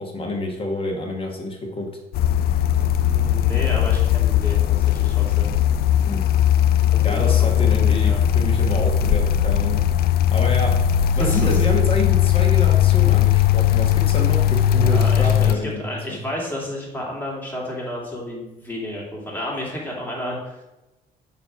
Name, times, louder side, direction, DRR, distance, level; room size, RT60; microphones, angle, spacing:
voice 1, 0.0-1.9 6.0-6.2 7.0-9.8 10.3-10.7 11.2-16.2, left 1 dB, 35° left, 1 dB, 1.5 m, -28 dB
sound 1, 2.1-15.6, left 10 dB, 65° left, 0.4 m, -18 dB
voice 2, 3.1-5.5 6.9-8.2 11.1-11.6 14.7-20.4, equal, 10° left, -3 dB, 2.4 m, -31 dB
6.9 x 3.3 x 6.0 m, 1.0 s
cardioid pair, 110°, 17 cm